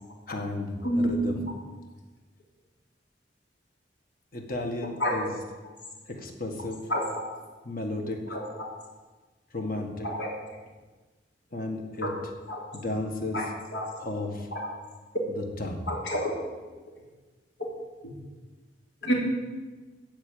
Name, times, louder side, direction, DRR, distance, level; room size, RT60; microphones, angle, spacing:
voice 1, 0.3-1.4 4.3-5.3 6.1-6.8 7.6-8.2 9.5-10.1 11.5-12.1 12.7-13.4 14.0-14.5 15.4-15.8, left 2 dB, 50° left, 3 dB, 1.7 m, -33 dB
voice 2, 0.8-1.2 5.0-5.3 6.9-7.2 8.3-8.5 10.0-10.3 12.0-12.1 12.5-12.6 13.3-13.4 13.7-13.8 14.5-14.7 15.9-16.3 19.0-19.1, equal, 75° left, -2 dB, 3.2 m, -28 dB
14.5 x 5.1 x 8.9 m, 1.3 s
head